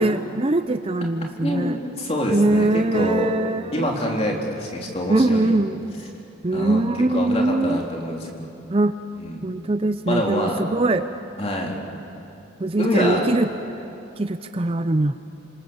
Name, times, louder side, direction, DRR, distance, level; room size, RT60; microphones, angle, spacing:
voice 1, 0.0-1.8 2.3-3.9 5.1-5.8 6.4-7.8 8.7-9.0 9.4-11.1 12.6-13.5 14.2-15.2, right 2 dB, 30° right, 10 dB, 0.5 m, -22 dB
voice 2, 1.4-3.3 3.7-5.5 6.5-6.8 7.1-8.3 9.2-9.4 10.1-10.6 11.4-11.7 12.8-13.2, left 1 dB, 30° left, -1 dB, 3.4 m, -25 dB
28.5 x 26.5 x 7.2 m, 2.9 s
head